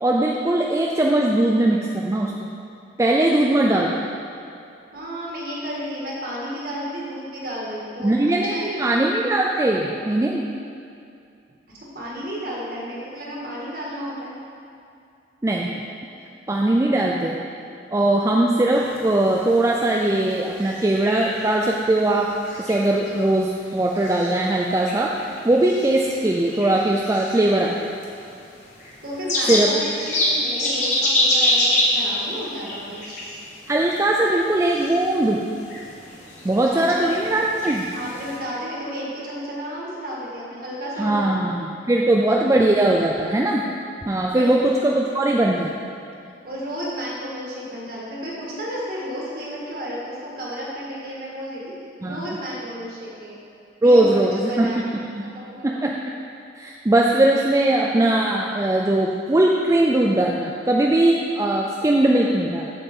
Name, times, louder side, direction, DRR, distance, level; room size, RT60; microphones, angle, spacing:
voice 1, 0.0-2.3 3.0-4.0 8.0-10.5 15.4-15.9 16.5-17.4 17.9-22.3 22.6-25.1 25.4-27.9 29.5-29.7 33.7-35.4 36.4-37.9 41.0-43.7 44.1-45.7 52.0-52.3 53.8-54.7 55.2-55.3 55.6-56.1 56.6-62.7, right 1 dB, 15° right, -1 dB, 0.3 m, -20 dB
voice 2, 4.9-8.9 11.7-14.4 29.0-33.1 36.7-37.3 37.9-41.5 44.3-44.5 46.4-51.7 52.0-53.4 53.8-54.9 55.3-55.8, equal, 50° right, -5 dB, 1.8 m, -32 dB
sound 1, 18.7-38.4, left 1 dB, 40° left, 1.4 m, -28 dB
7.8 x 7.5 x 3.7 m, 2.5 s
head